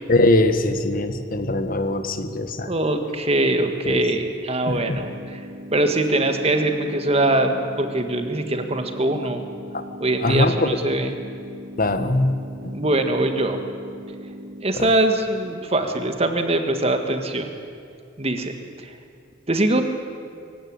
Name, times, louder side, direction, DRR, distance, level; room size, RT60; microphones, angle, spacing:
voice 1, 0.1-2.7 3.8-4.0 4.7-5.0 10.2-10.8 11.8-12.7 14.7-14.9, left 2 dB, 45° left, 9 dB, 1.4 m, -21 dB
voice 2, 2.6-5.4 5.7-9.4 10.0-11.1 12.7-13.6 14.6-17.5 18.2-18.5 19.5-19.8, right 1 dB, 30° right, 6 dB, 1.8 m, -22 dB
sound 1, 4.6-14.6, equal, 60° right, 1.4 m, -39 dB
24.5 x 16.5 x 8.9 m, 2.4 s
head